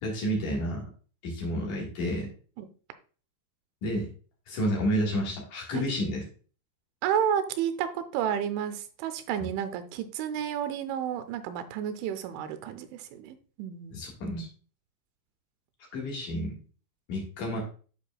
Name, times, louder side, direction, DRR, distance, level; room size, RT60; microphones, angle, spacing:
voice 1, 0.0-0.9 1.2-2.3 3.8-4.1 4.5-6.2 13.9-14.5 15.9-16.6 17.1-17.6, equal, 60° left, -2 dB, 2.3 m, -30 dB
voice 2, 7.0-14.0, right 9 dB, 90° right, 10 dB, 3.1 m, -31 dB
11.5 x 4.7 x 2.2 m, 0.39 s
omnidirectional pair, 5.5 m